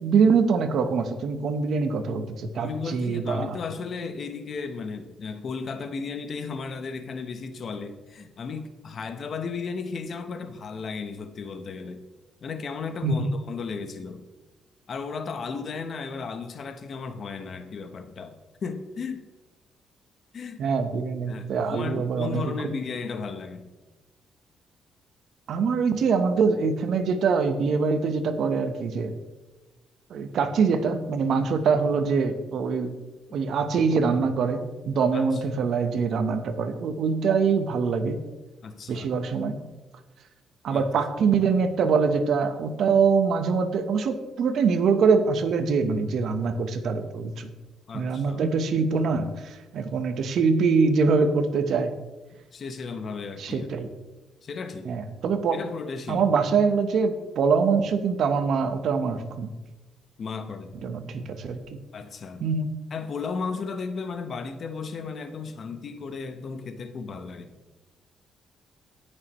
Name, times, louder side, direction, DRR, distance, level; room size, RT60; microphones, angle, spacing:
voice 1, 0.0-3.6 13.0-13.3 20.6-22.5 25.5-29.1 30.1-33.0 33.3-38.2 38.9-39.6 40.6-47.5 47.9-52.0 53.4-53.9 54.8-55.6 56.1-59.5 60.8-61.7 62.4-62.8, right 5 dB, 70° right, 9 dB, 1.0 m, -24 dB
voice 2, 2.5-12.0 12.4-14.2 14.9-19.3 20.3-20.6 21.3-23.6 35.1-35.4 38.6-39.1 40.7-40.9 47.9-48.4 52.5-53.7 54.4-54.9 55.5-56.2 60.2-60.7 61.9-62.5 62.9-67.5, left 5 dB, 50° left, 9 dB, 1.0 m, -35 dB
17.5 x 6.5 x 3.1 m, 1.1 s
cardioid pair, 90°, 0 cm